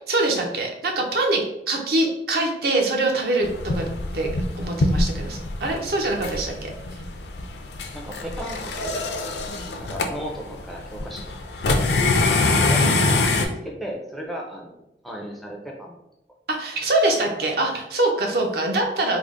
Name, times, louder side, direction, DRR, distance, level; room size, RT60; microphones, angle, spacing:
voice 1, 0.1-3.5 3.7-3.9 4.1-4.3 4.6-6.7 12.8-13.0 16.5-19.2, right 2 dB, 60° right, 1 dB, 0.6 m, -24 dB
sound 1, 3.4-13.5, left 2 dB, 70° left, 0.4 m, -24 dB
voice 2, 7.9-9.1 9.8-11.3 11.6-11.9 12.2-12.8 13.1-16.0 16.8-16.9, equal, ahead, -1 dB, 0.4 m, -36 dB
3.6 x 2.0 x 3.6 m, 0.85 s
head